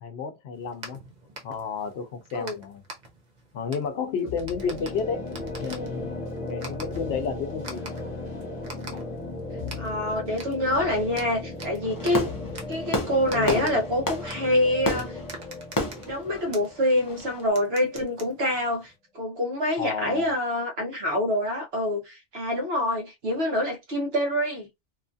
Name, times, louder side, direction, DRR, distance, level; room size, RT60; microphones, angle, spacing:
voice 1, 0.0-1.0 1.4-2.8 3.5-5.2 5.6-6.1 6.4-8.0 13.3-13.8 19.8-20.2, left 5 dB, 70° left, 0.8 m, -31 dB
sound 1, 0.5-19.0, right 2 dB, 45° right, 0.8 m, -46 dB
sound 2, 4.3-17.9, left 2 dB, 40° left, 1.0 m, -37 dB
voice 2, 9.8-12.3 12.7-15.2 16.0-24.7, left 1 dB, 65° right, 1.2 m, -26 dB
Fireworks, 11.8-17.4, left 1 dB, 25° left, 0.5 m, -32 dB
3.0 x 2.3 x 2.5 m
omnidirectional pair, 1.1 m